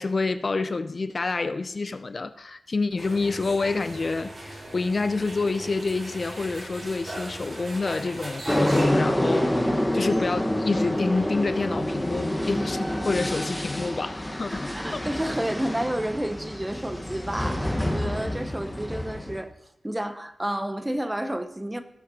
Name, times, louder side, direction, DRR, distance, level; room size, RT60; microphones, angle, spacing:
voice 1, 0.0-15.1, left 3 dB, 45° left, 0.4 m, -28 dB
sound 1, 3.0-8.8, right 1 dB, 40° right, 4.0 m, -38 dB
sound 2, 8.5-19.4, left 1 dB, 5° left, 1.2 m, -27 dB
voice 2, 14.5-19.5 19.8-21.8, right 1 dB, 10° right, 0.7 m, -30 dB
18.0 x 6.6 x 4.1 m
wide cardioid pair, 130°, 0 cm